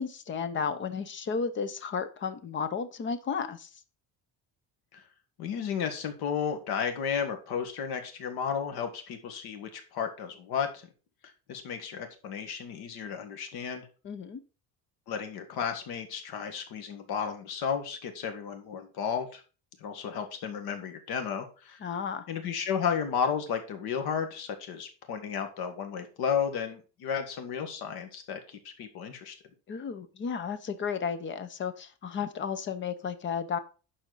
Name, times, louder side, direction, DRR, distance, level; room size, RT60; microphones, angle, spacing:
voice 1, 0.0-3.7 14.0-14.4 21.8-22.3 29.7-33.6, left 6 dB, 30° left, 12 dB, 0.7 m, -33 dB
voice 2, 5.4-10.8 11.5-13.9 15.1-19.4 19.8-21.8 22.3-29.3, left 7 dB, 70° left, 6 dB, 1.8 m, -33 dB
11.5 x 4.4 x 4.0 m, 0.35 s
cardioid pair, 175°, 39 cm